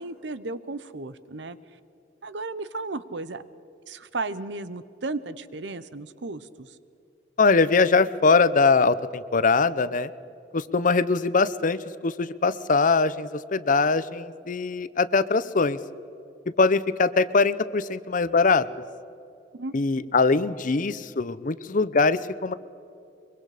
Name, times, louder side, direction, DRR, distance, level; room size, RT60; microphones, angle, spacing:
voice 1, 0.0-1.6 2.2-3.4 3.9-6.7 19.6-19.7, right 3 dB, 75° right, 14 dB, 0.9 m, -34 dB
voice 2, 7.4-10.1 10.5-11.8 12.0-15.8 16.6-18.6 19.7-22.5, left 4 dB, 45° left, 16 dB, 0.7 m, -22 dB
23.5 x 23.0 x 5.0 m, 2.6 s
head